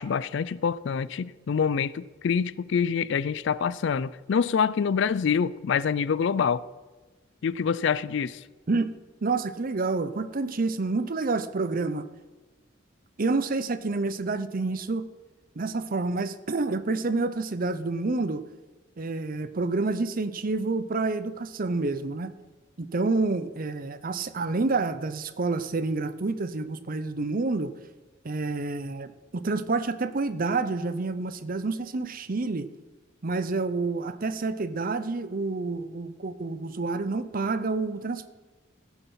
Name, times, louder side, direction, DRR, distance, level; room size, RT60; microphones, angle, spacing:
voice 1, 0.0-6.6 7.4-8.4, left 6 dB, 65° left, 0.4 m, -26 dB
voice 2, 9.2-12.1 13.2-15.1 15.6-18.4 19.0-22.3 22.8-27.7 28.2-32.7 33.2-38.3, right 3 dB, 45° right, 0.7 m, -28 dB
15.5 x 7.1 x 5.6 m
head